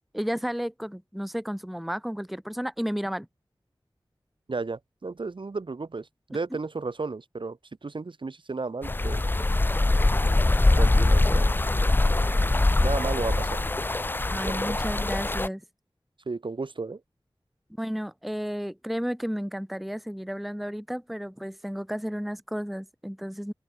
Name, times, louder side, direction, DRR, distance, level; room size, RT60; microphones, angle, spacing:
voice 1, 0.1-3.3 14.3-15.6 17.8-23.5, equal, ahead, 0.9 m, -32 dB
voice 2, 4.5-9.2 10.8-11.5 12.8-13.6 14.4-14.7 16.3-17.0, right 3 dB, 65° right, 1.6 m, -33 dB
sound 1, 8.8-15.5, left 2 dB, 20° left, 0.4 m, -23 dB
wide cardioid pair, 70°, 9 cm